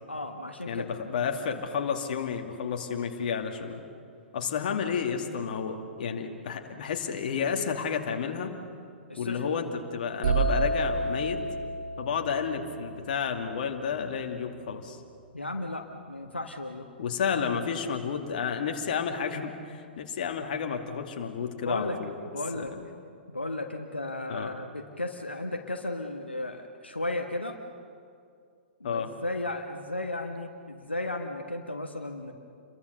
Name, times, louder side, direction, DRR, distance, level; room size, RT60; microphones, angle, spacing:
voice 1, 0.1-0.9 9.1-9.7 15.3-16.9 17.3-17.8 21.6-22.0 22.2-22.7 23.3-27.6 28.8-32.3, left 2 dB, 85° left, 4 dB, 1.5 m, -35 dB
voice 2, 0.7-3.8 4.3-8.5 9.2-11.4 12.0-15.0 17.0-22.1 22.5-22.8 24.3-24.5 28.8-29.1, left 6 dB, 50° left, 4 dB, 2.3 m, -31 dB
sound 1, 10.2-14.0, right 3 dB, 55° right, 7.1 m, -30 dB
28.5 x 23.0 x 6.8 m, 2.4 s
figure-of-eight pair, 110°, 6 cm